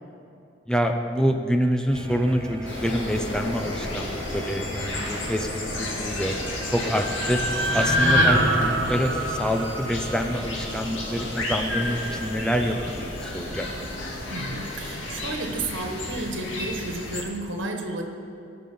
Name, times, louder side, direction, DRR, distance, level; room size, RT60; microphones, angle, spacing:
voice 1, 0.7-6.4 6.7-7.4 7.7-13.7, equal, 5° left, 5 dB, 0.5 m, -26 dB
sound 1, 1.9-13.9, right 1 dB, 30° right, 1.2 m, -39 dB
sound 2, 2.6-17.2, left 1 dB, 80° left, 2.1 m, -33 dB
sound 3, 6.4-10.7, equal, 70° right, 1.3 m, -24 dB
voice 2, 14.3-18.0, right 2 dB, 85° right, 3 dB, 1.4 m, -32 dB
17.5 x 6.7 x 5.4 m, 2.6 s
head